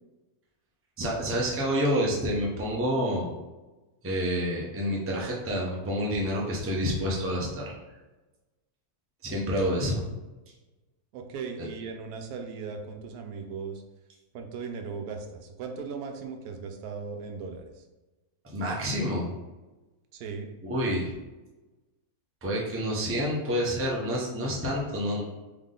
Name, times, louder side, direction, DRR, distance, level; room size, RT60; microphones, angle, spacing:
voice 1, 1.0-3.4 4.0-7.7 9.2-10.0 11.6-11.7 18.5-19.3 20.6-21.1 22.4-25.2, equal, 15° right, -3 dB, 0.5 m, -28 dB
voice 2, 11.1-13.8 14.3-17.8 20.1-20.5, right 5 dB, 80° right, 5 dB, 1.1 m, -38 dB
3.6 x 3.5 x 3.7 m, 1.1 s
omnidirectional pair, 1.6 m